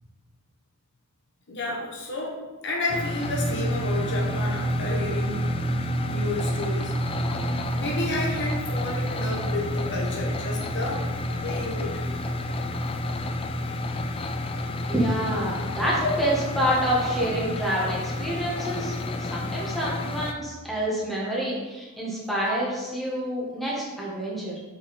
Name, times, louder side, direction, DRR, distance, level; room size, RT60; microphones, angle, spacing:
voice 1, 1.5-5.6 6.0-6.9 7.7-12.0, left 2 dB, 55° left, -2 dB, 1.2 m, -31 dB
sound 1, 2.9-20.3, left 2 dB, 25° left, 0.3 m, -31 dB
sound 2, 3.2-20.9, right 3 dB, 50° right, 0.5 m, -33 dB
voice 2, 14.9-24.6, equal, ahead, -6 dB, 1.5 m, -27 dB
5.8 x 4.7 x 4.2 m, 1.2 s
head